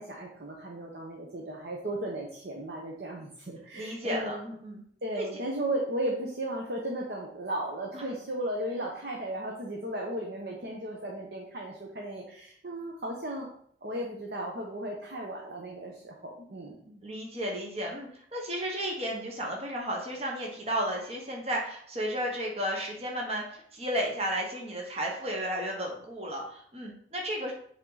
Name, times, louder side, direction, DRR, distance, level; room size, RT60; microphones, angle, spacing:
voice 1, 0.0-4.5 5.0-13.5 13.8-17.0, right 1 dB, 60° right, -1 dB, 1.0 m, -35 dB
voice 2, 3.7-4.8 5.2-5.3 5.5-5.7 7.9-8.0 17.0-27.5, equal, 35° right, -1 dB, 1.2 m, -33 dB
7.4 x 3.7 x 4.0 m, 0.65 s
head